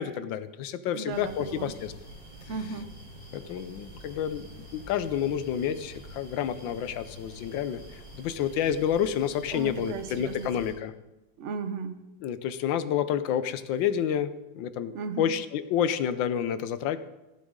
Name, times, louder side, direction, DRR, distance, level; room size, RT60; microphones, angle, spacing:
voice 1, 0.0-1.9 3.3-10.9 12.2-17.0, left 9 dB, 80° left, 13 dB, 1.4 m, -29 dB
voice 2, 0.9-1.7 2.5-2.9 9.5-10.7 11.4-12.1 14.9-15.3, right 4 dB, 55° right, 9 dB, 0.8 m, -35 dB
sound 1, 1.1-10.7, equal, 5° left, 3.3 m, -47 dB
16.0 x 8.2 x 3.7 m, 1.0 s
omnidirectional pair, 2.0 m